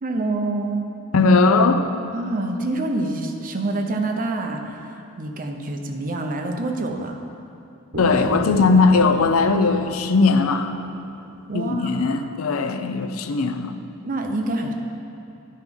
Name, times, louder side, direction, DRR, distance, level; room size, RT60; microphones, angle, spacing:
voice 1, 0.0-0.8 2.1-7.2 11.5-12.2 14.0-14.7, right 2 dB, 40° right, 4 dB, 0.7 m, -27 dB
voice 2, 1.1-1.9 8.0-10.7 11.5-13.7, left 4 dB, 75° left, 8 dB, 0.5 m, -18 dB
sound 1, 7.9-11.8, equal, 60° right, 1.4 m, -35 dB
10.5 x 4.7 x 5.3 m, 2.7 s
head